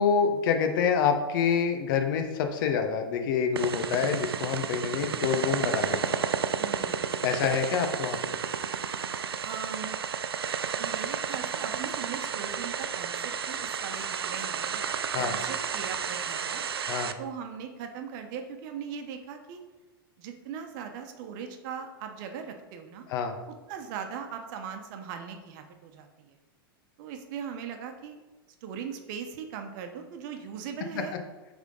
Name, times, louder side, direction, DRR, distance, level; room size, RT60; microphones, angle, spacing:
voice 1, 0.0-6.2 7.2-8.4 15.1-15.3 16.9-17.1 23.1-23.3, left 6 dB, 60° left, 5 dB, 0.9 m, -27 dB
sound 1, 3.6-17.1, right 7 dB, 90° right, 0.4 m, -31 dB
voice 2, 6.6-7.2 9.4-10.0 10.8-14.8 15.1-16.6 17.2-19.6 20.2-23.1 23.7-26.3 27.0-28.2 28.6-31.1, right 7 dB, 55° right, 6 dB, 0.9 m, -39 dB
8.2 x 3.6 x 3.8 m, 1.2 s
hypercardioid pair, 105°, 12 cm